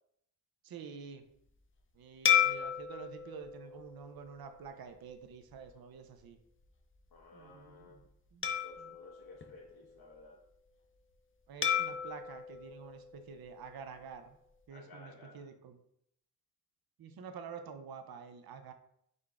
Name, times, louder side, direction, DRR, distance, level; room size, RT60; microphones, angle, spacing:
voice 1, 0.7-1.2 2.0-6.4 7.3-8.0 8.3-8.4 11.5-14.2 14.7-15.8 17.0-18.7, right 6 dB, 70° right, 8 dB, 0.6 m, -48 dB
sound 1, 2.2-4.9 5.5-5.7 8.4-10.2 11.6-13.9, left 9 dB, 35° left, 0.5 m, -34 dB
voice 2, 7.1-8.0 8.6-10.4 14.7-15.4, left 3 dB, 70° left, -2 dB, 0.8 m, -55 dB
4.0 x 3.5 x 3.3 m, 0.73 s
wide cardioid pair, 100°, 38 cm